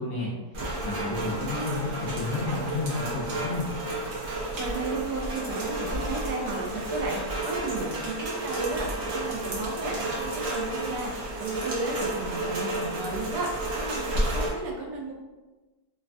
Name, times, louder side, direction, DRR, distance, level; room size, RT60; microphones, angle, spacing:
voice 1, 0.0-3.7, left 3 dB, 70° left, -5 dB, 1.0 m, -32 dB
Rain, 0.5-14.5, right 1 dB, 60° right, 0.8 m, -31 dB
voice 2, 1.0-1.8 4.6-15.1, right 3 dB, 85° right, -1 dB, 1.2 m, -34 dB
3.2 x 2.2 x 2.5 m, 1.2 s
omnidirectional pair, 1.7 m